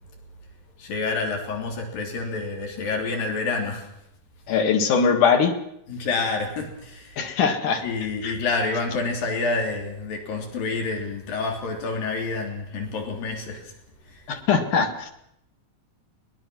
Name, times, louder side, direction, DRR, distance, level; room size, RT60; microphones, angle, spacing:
voice 1, 0.8-3.9 5.9-7.3 7.8-13.7 14.0-14.3, left 3 dB, 90° left, 2 dB, 4.9 m, -28 dB
voice 2, 4.5-5.5 7.2-7.8 8.2-8.4 14.3-15.1, left 6 dB, 65° left, 5 dB, 3.4 m, -21 dB
22.5 x 20.5 x 6.2 m, 0.77 s
omnidirectional pair, 3.9 m